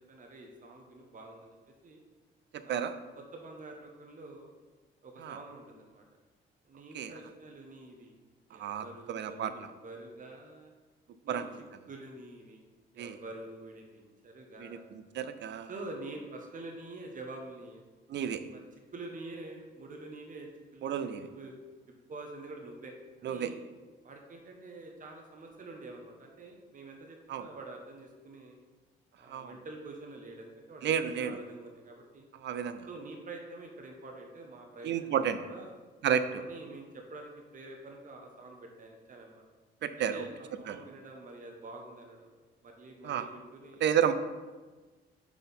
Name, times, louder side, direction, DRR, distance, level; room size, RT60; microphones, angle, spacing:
voice 1, 0.1-2.0 2.6-4.5 5.0-6.0 6.6-8.2 8.5-10.7 11.2-11.4 11.9-12.6 12.9-14.8 15.7-17.8 18.5-18.6 18.9-21.5 22.1-22.9 23.2-23.6 24.0-28.6 29.2-32.3 32.9-35.2 35.5-35.7 36.4-39.4 40.0-42.3 42.6-43.8, right 2 dB, 40° right, 2 dB, 1.0 m, -47 dB
voice 2, 2.5-2.9 5.2-5.4 6.9-7.1 8.5-9.5 11.3-11.6 13.0-13.2 14.6-14.8 15.1-15.7 18.1-18.4 20.8-21.3 23.2-23.5 27.3-27.5 29.3-29.5 30.8-31.4 32.4-32.9 34.8-35.4 36.0-36.4 39.8-40.3 40.7-40.8 43.0-43.3 43.8-44.1, right 8 dB, 65° right, 11 dB, 0.5 m, -31 dB
6.0 x 4.3 x 5.4 m, 1.3 s
cardioid pair, 90°, 20 cm